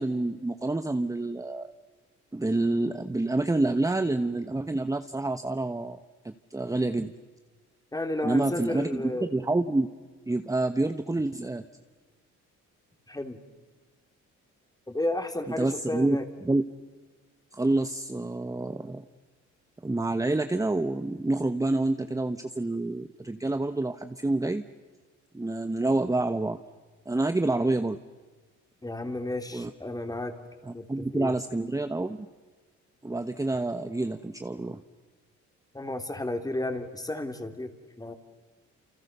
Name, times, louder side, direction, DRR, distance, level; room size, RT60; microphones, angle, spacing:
voice 1, 0.0-1.7 2.3-6.0 6.2-7.1 8.2-9.9 10.3-11.6 15.6-16.6 17.5-19.0 19.8-24.6 25.3-26.6 27.1-28.0 29.5-29.7 30.7-32.3 33.0-34.8, right 2 dB, 10° right, 8 dB, 1.1 m, -28 dB
voice 2, 7.9-9.3 13.1-13.4 14.9-16.3 28.8-30.3 30.7-31.3 35.7-38.1, left 1 dB, 10° left, 6 dB, 3.3 m, -32 dB
29.5 x 28.5 x 6.8 m, 1.4 s
cardioid pair, 90°, 30 cm